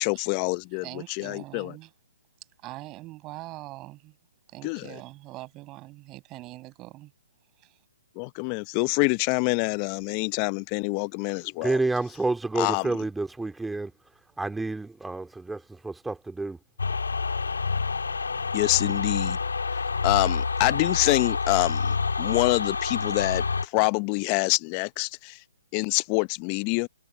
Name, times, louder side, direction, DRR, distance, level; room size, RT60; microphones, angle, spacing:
voice 1, 0.0-1.7 4.6-5.0 8.2-11.8 12.5-13.1 18.5-19.4 19.7-25.4 25.7-26.9, left 32 dB, 30° left, 0.7 m, -26 dB
voice 2, 0.7-1.9 2.6-4.2 4.5-7.1 7.6-7.8, right 19 dB, 25° right, 7.0 m, -42 dB
voice 3, 11.6-13.9 14.4-16.6, right 3 dB, 5° right, 2.3 m, -29 dB
sound 1, 16.8-23.6, left 4 dB, 80° left, 2.4 m, -28 dB
figure-of-eight pair, 135°, 0 cm